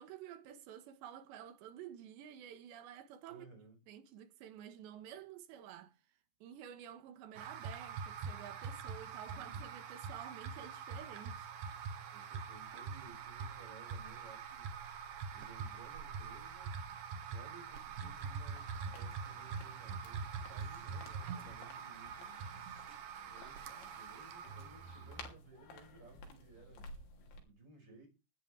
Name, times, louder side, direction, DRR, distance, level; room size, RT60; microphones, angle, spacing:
voice 1, 0.0-3.5 3.9-6.0 6.4-11.5, right 10 dB, 80° right, 3.6 m, -51 dB
voice 2, 3.3-3.8 9.0-9.6 12.1-14.7 15.3-16.8 17.3-22.3 23.3-26.9 27.2-28.1, right 3 dB, 25° right, 6.3 m, -59 dB
sound 1, 7.4-25.3, right 6 dB, 65° right, 2.5 m, -44 dB
sound 2, 18.1-27.4, left 3 dB, 85° left, 5.4 m, -56 dB
17.5 x 12.5 x 3.5 m
omnidirectional pair, 5.1 m